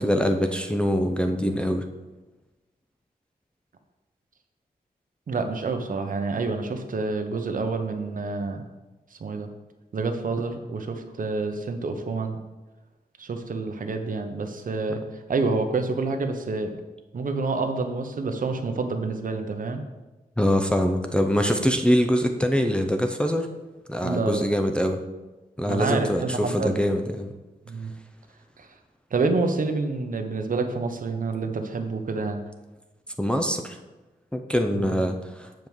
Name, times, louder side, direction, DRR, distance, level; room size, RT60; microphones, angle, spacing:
voice 1, 0.0-1.8 20.4-23.5 23.9-25.0 25.6-27.3 33.2-33.8 34.3-35.5, equal, 5° left, 4 dB, 0.5 m, -24 dB
voice 2, 5.3-8.6 9.1-9.5 9.9-12.4 13.2-16.7 17.1-19.8 24.0-24.5 25.7-26.8 27.7-27.9 28.6-28.7 29.1-32.4 34.7-35.0, right 3 dB, 60° right, 6 dB, 0.9 m, -28 dB
7.7 x 4.6 x 7.1 m, 1.1 s
wide cardioid pair, 165°, 16 cm